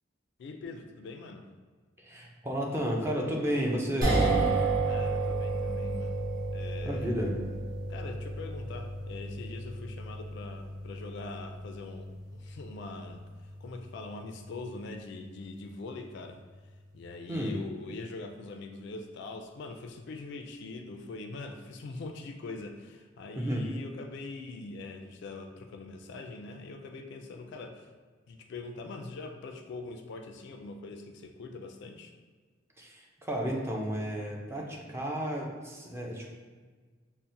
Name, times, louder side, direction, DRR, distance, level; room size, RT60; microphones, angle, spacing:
voice 1, 0.4-1.4 4.9-6.2 6.5-7.1 7.9-13.2 13.6-16.4 16.9-27.9 28.3-32.1, left 3 dB, 60° left, 4 dB, 0.3 m, -43 dB
voice 2, 2.0-4.5 6.8-7.4 17.3-17.6 23.4-23.7 32.8-36.3, equal, 15° right, -1 dB, 0.4 m, -32 dB
sound 1, 4.0-16.3, right 2 dB, 45° right, 1.2 m, -33 dB
5.6 x 2.0 x 2.6 m, 1.4 s
head